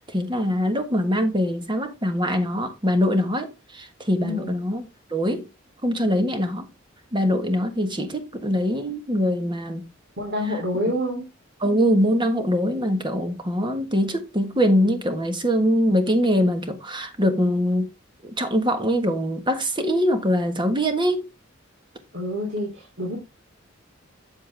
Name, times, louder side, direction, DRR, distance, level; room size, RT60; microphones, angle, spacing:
voice 1, 0.0-4.8 5.1-5.5 5.8-6.7 7.1-9.9 11.6-17.9 18.2-21.2, equal, 25° right, 1.4 m, -23 dB
voice 2, 10.2-11.2 22.1-23.2, left 1 dB, 60° right, 3.0 m, -27 dB
7.5 x 7.5 x 3.4 m
head